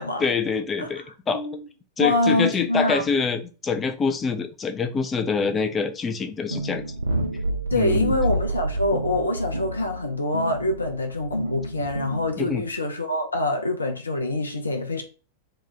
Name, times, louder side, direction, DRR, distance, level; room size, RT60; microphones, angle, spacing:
voice 1, 0.2-1.4 2.0-6.8 7.7-8.1 12.4-12.6, left 5 dB, 20° left, 0.5 m, -25 dB
voice 2, 2.0-3.0 7.7-15.0, left 2 dB, 80° left, 0.5 m, -25 dB
sound 1, 6.5-12.7, right 1 dB, 80° right, 0.5 m, -29 dB
2.9 x 2.3 x 3.9 m
figure-of-eight pair, 90°, 0 cm